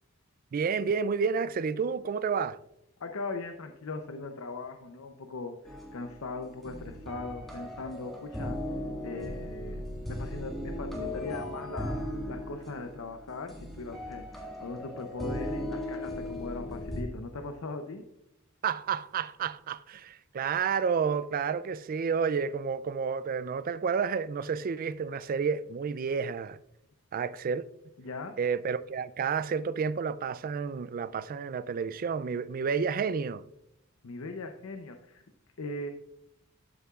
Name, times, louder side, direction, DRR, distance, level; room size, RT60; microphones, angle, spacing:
voice 1, 0.5-2.6 18.6-26.6 27.1-27.6 28.4-33.4, right 6 dB, 40° right, 0.3 m, -30 dB
voice 2, 3.0-8.6 9.0-9.8 10.1-18.0 28.0-28.4 34.0-35.2 35.6-35.9, left 3 dB, 80° left, 0.7 m, -39 dB
sound 1, 5.7-17.0, left 1 dB, ahead, 1.7 m, -37 dB
12.0 x 6.7 x 2.4 m
head